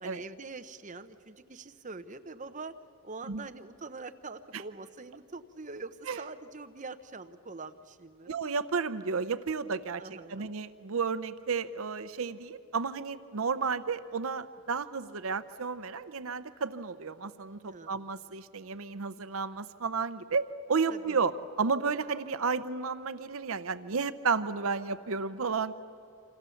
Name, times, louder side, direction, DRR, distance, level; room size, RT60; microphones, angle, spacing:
voice 1, 0.0-2.7 3.0-8.3 10.0-10.5 17.6-18.1 20.9-21.2, right 3 dB, 35° right, 9 dB, 0.8 m, -44 dB
voice 2, 8.3-25.7, right 5 dB, 70° right, 13 dB, 0.7 m, -32 dB
28.5 x 26.0 x 7.1 m, 2.6 s
head